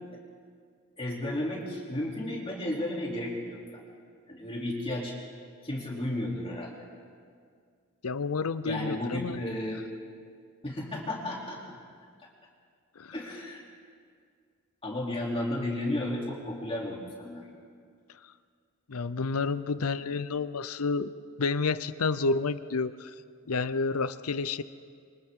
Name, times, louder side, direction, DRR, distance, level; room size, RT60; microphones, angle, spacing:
voice 1, 1.0-3.6 4.3-5.2 5.6-6.7 8.6-9.8 10.6-11.6 13.1-13.6 14.8-17.4, left 1 dB, 25° left, -4 dB, 3.2 m, -33 dB
voice 2, 8.0-9.4 13.0-13.1 18.9-21.1 21.4-23.1 23.5-24.6, left 4 dB, 90° left, 14 dB, 0.7 m, -30 dB
29.0 x 24.5 x 3.8 m, 2.1 s
head